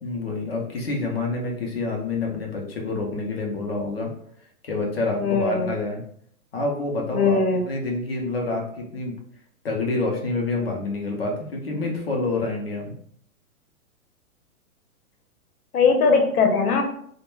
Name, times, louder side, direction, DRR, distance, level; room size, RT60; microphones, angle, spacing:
voice 1, 0.0-4.1 4.6-6.0 6.5-7.4 7.7-9.2 9.6-12.9, left 3 dB, 45° left, 0 dB, 0.5 m, -27 dB
voice 2, 5.2-5.7 7.1-7.7 15.7-16.8, left 4 dB, 75° left, 4 dB, 0.8 m, -20 dB
2.2 x 2.1 x 3.0 m, 0.64 s
hypercardioid pair, 175°, 44 cm